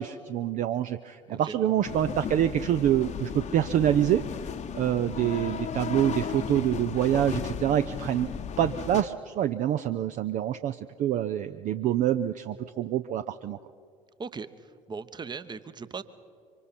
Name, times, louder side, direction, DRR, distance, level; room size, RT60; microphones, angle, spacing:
voice 1, 0.0-4.2 4.7-8.3 8.6-13.6, right 11 dB, 45° right, 10 dB, 0.5 m, -26 dB
sound 1, 1.8-9.0, left 7 dB, 40° left, 1.0 m, -35 dB
voice 2, 14.9-16.0, right 5 dB, 25° right, 13 dB, 0.9 m, -38 dB
25.5 x 24.5 x 4.3 m, 2.4 s
figure-of-eight pair, 55°, 18 cm